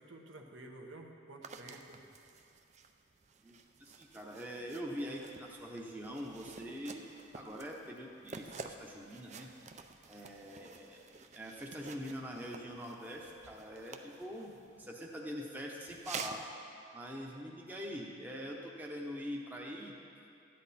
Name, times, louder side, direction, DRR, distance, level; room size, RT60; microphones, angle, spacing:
voice 1, 0.0-2.0, right 2 dB, 70° right, 2 dB, 1.1 m, -51 dB
sound 1, 1.4-14.9 15.9-16.5, right 5 dB, 35° right, 0.4 m, -50 dB
voice 2, 3.4-7.0 7.3-9.5 10.1-11.0 11.3-16.4 16.9-20.0, equal, 10° right, -2 dB, 0.8 m, -44 dB
14.0 x 10.5 x 4.2 m, 2.6 s
head